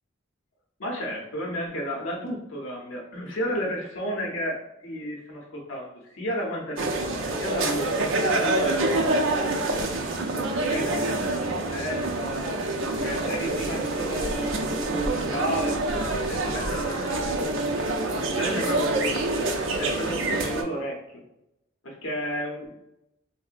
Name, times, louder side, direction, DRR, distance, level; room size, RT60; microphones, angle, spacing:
voice 1, 0.8-8.9 9.4-9.8 10.6-12.6 13.0-17.9 18.3-19.5 19.8-21.0 21.8-22.7, equal, 75° left, -1 dB, 0.6 m, -33 dB
sound 1, 6.8-20.6, right 2 dB, 65° right, 0.4 m, -26 dB
3.6 x 2.0 x 2.4 m, 0.86 s
head